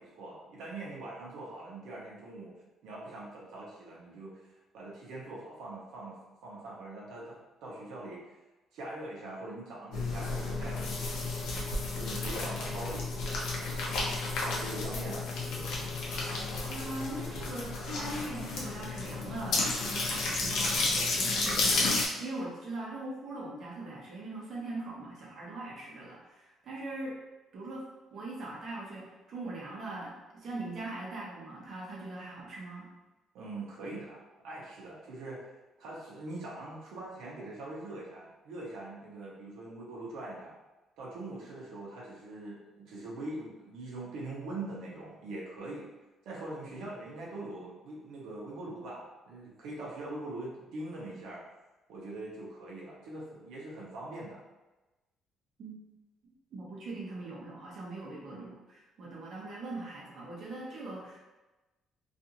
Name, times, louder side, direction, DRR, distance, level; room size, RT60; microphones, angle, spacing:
voice 1, 0.0-2.5 2.8-7.4 7.6-8.3 8.7-14.0 14.4-15.7 33.3-35.5 35.8-40.5 41.0-45.9 46.2-51.4 51.9-54.4 58.3-58.6, right 2 dB, 85° right, -5 dB, 0.7 m, -43 dB
sound 1, 9.9-22.1, left 3 dB, 75° left, 0.6 m, -32 dB
voice 2, 16.7-27.2 27.5-27.9 28.1-32.9 55.6-55.8 56.2-61.2, right 2 dB, 45° right, -5 dB, 0.7 m, -41 dB
2.5 x 2.4 x 2.8 m, 1.1 s
cardioid pair, 165°, 0 cm